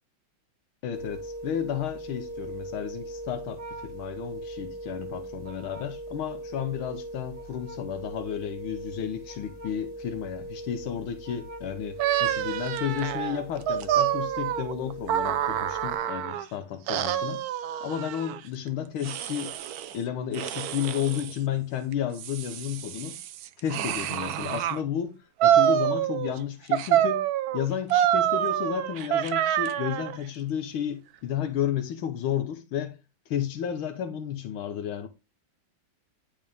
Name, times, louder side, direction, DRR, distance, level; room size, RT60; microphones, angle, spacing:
voice 1, 0.8-17.4 17.8-19.6 19.9-23.2 23.6-27.2 27.5-33.0 33.3-35.1, left 9 dB, 85° left, 1.8 m, -32 dB
sound 1, 0.9-16.0, right 1 dB, 15° left, 5.5 m, -40 dB
sound 2, 12.0-16.5 16.9-18.4 19.0-19.9 20.3-21.3 21.9-24.8 25.4-26.4 26.7-30.2, right 11 dB, 75° right, 0.8 m, -27 dB
10.5 x 5.5 x 3.5 m
omnidirectional pair, 2.2 m